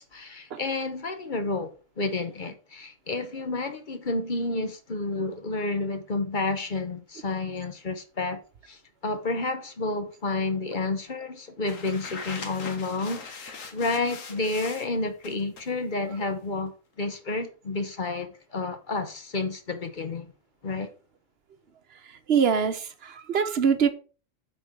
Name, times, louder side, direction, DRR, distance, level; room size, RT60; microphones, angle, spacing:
voice 1, 0.0-20.3 20.6-20.9, left 3 dB, 45° left, 0.9 m, -30 dB
sound 1, 11.7-14.9 15.2-15.7, left 5 dB, 85° left, 1.6 m, -41 dB
voice 2, 22.3-23.9, right 7 dB, 55° right, 1.1 m, -23 dB
8.2 x 4.5 x 4.8 m
omnidirectional pair, 1.3 m